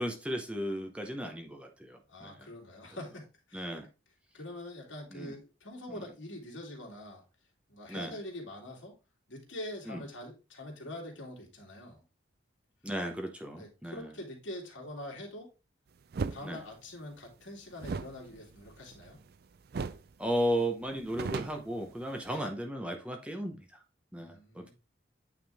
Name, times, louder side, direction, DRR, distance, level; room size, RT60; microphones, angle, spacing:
voice 1, 0.0-2.5 3.5-3.9 5.1-5.3 5.9-6.1 7.9-8.2 9.9-10.0 12.8-14.1 16.4-16.6 20.2-23.8 24.1-24.7, equal, 5° right, 3 dB, 0.7 m, -35 dB
voice 2, 2.1-3.7 4.3-7.2 7.7-8.9 9.3-12.0 13.5-15.5 16.3-19.2 22.2-22.4 24.1-24.7, left 1 dB, 75° left, 0 dB, 2.4 m, -44 dB
sound 1, 16.1-16.4 17.8-19.3 19.7-20.1 20.4-20.5 20.8-22.4, right 4 dB, 50° right, 0.3 m, -37 dB
8.8 x 3.6 x 3.4 m, 0.30 s
head